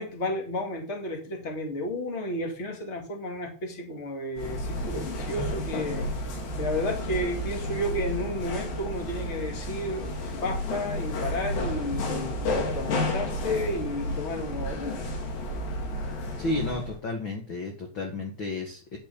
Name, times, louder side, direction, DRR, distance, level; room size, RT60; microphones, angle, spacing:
voice 1, 0.0-6.1 6.6-15.1, left 1 dB, 25° left, 3 dB, 1.7 m, -32 dB
sound 1, 4.4-17.0, left 1 dB, 85° left, 4.8 m, -31 dB
voice 2, 16.4-19.0, left 2 dB, 50° left, 2 dB, 1.5 m, -32 dB
10.5 x 5.6 x 7.0 m, 0.39 s
omnidirectional pair, 4.8 m